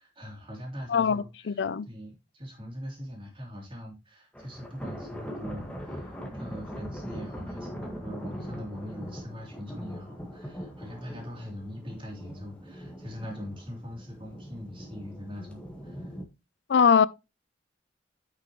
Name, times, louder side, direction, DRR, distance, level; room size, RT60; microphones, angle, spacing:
voice 1, 0.0-16.2, equal, 30° right, 3.1 m, -42 dB
voice 2, 0.9-1.9 16.7-17.1, left 6 dB, 70° left, 0.4 m, -22 dB
sound 1, 4.3-16.2, equal, 5° left, 1.6 m, -41 dB
9.5 x 5.8 x 3.0 m
head